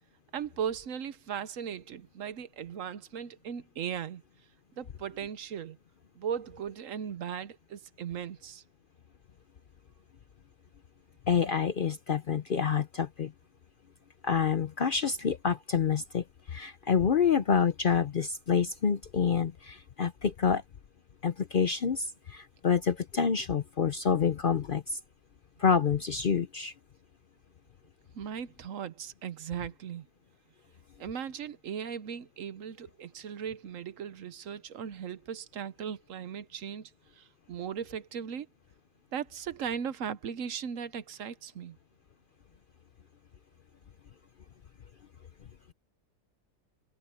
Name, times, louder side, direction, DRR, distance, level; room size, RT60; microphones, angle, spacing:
voice 1, 0.3-4.2 4.8-5.8 6.1-8.6 28.1-30.1 31.0-38.5 39.1-41.8, right 8 dB, 65° right, 1.2 m, -38 dB
voice 2, 11.3-13.3 14.2-20.6 21.2-25.0 25.6-26.7, left 6 dB, 50° left, 0.7 m, -27 dB
omnidirectional pair, 1.5 m